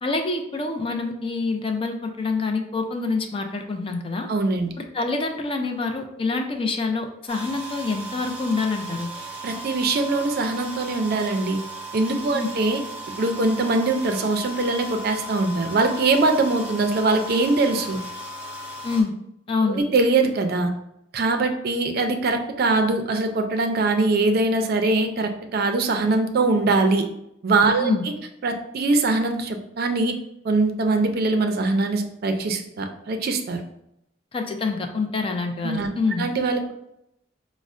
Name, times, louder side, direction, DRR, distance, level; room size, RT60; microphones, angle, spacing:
voice 1, 0.0-4.3 4.9-9.1 12.3-12.5 18.8-19.1 19.5-19.8 27.8-28.0 34.3-36.3, left 3 dB, 30° left, 5 dB, 0.4 m, -26 dB
voice 2, 4.3-4.7 9.4-11.6 11.9-12.8 13.2-18.0 19.7-20.7 21.1-27.1 27.4-27.9 28.4-30.2 30.4-33.6 35.6-35.9 36.2-36.7, right 3 dB, 55° right, 6 dB, 0.4 m, -22 dB
sound 1, 7.3-19.0, right 1 dB, 10° right, 0.8 m, -36 dB
5.1 x 2.0 x 2.5 m, 0.79 s
head